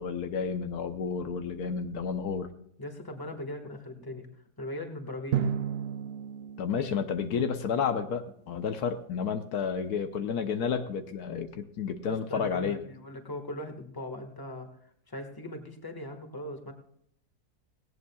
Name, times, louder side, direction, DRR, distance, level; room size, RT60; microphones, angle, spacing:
voice 1, 0.0-2.5 6.6-12.8, left 6 dB, 75° left, 8 dB, 1.4 m, -31 dB
voice 2, 2.8-4.3 4.6-5.5 12.1-16.7, left 1 dB, 15° left, 4 dB, 1.6 m, -39 dB
Drum, 5.3-8.0, right 8 dB, 75° right, 0.5 m, -34 dB
18.0 x 17.0 x 2.3 m, 0.70 s
omnidirectional pair, 1.7 m